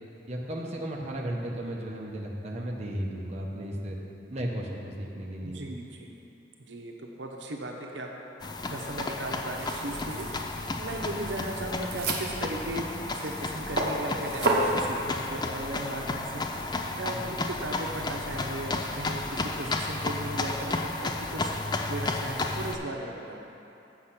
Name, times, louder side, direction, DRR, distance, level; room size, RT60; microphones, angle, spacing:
voice 1, 0.3-4.0 4.3-5.6 17.1-17.3, right 1 dB, 40° right, -2 dB, 0.9 m, -34 dB
voice 2, 5.4-6.1 6.6-8.1 8.7-10.3 10.8-12.9 13.2-16.5 17.0-21.5 21.9-23.4, right 1 dB, 90° right, 1 dB, 0.8 m, -37 dB
sound 1, 8.4-22.7, left 2 dB, 25° left, 0.4 m, -33 dB
sound 2, 9.5-14.8, right 2 dB, 60° right, 1.0 m, -32 dB
8.1 x 6.6 x 5.8 m, 2.9 s
head